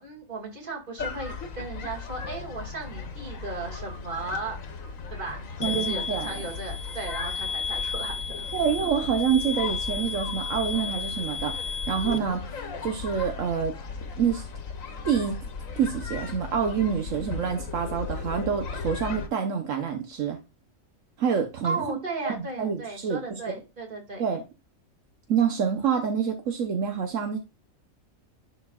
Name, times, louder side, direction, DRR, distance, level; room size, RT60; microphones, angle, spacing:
voice 1, 0.0-4.6 5.1-8.1 21.6-24.3, right 3 dB, 40° right, 2.3 m, -36 dB
sound 1, 1.0-19.3, left 5 dB, 85° left, 1.4 m, -37 dB
sound 2, 5.6-12.2, left 5 dB, 55° left, 0.4 m, -33 dB
voice 2, 5.6-6.4 8.5-12.4 12.8-13.7 14.2-14.4 15.0-15.4 15.8-20.4 21.2-21.8 22.2-23.4 24.2-24.4 25.3-27.4, right 7 dB, 75° right, 1.3 m, -27 dB
11.0 x 4.5 x 2.3 m
omnidirectional pair, 1.4 m